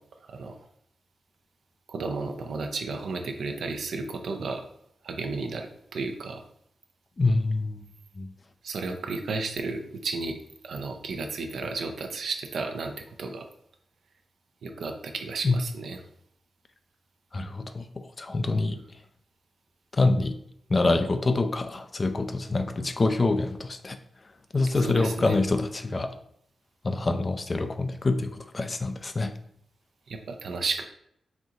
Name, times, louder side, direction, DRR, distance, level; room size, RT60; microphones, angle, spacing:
voice 1, 1.9-4.6 5.0-6.4 8.6-10.4 10.6-13.5 14.6-16.0 24.8-25.4 30.1-30.8, right 4 dB, 80° right, 5 dB, 0.6 m, -33 dB
voice 2, 7.2-7.9 8.2-8.3 15.4-15.6 17.3-17.9 18.2-18.8 19.9-20.4 20.7-24.0 24.5-26.2 26.8-29.3, left 3 dB, 40° left, 9 dB, 0.4 m, -26 dB
4.3 x 2.5 x 3.9 m, 0.71 s
cardioid pair, 50°, 0 cm